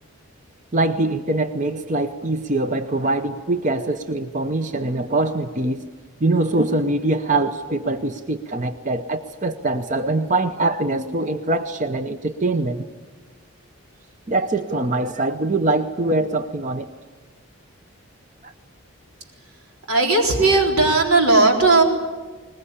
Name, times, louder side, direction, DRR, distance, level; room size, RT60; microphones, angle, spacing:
voice 1, 0.7-5.9 6.2-12.8 14.3-16.9 18.4-18.5, right 2 dB, 35° right, 8 dB, 0.7 m, -23 dB
voice 2, 19.9-21.8, right 3 dB, 85° right, 1 dB, 4.1 m, -16 dB
21.5 x 20.5 x 9.9 m, 1.4 s
head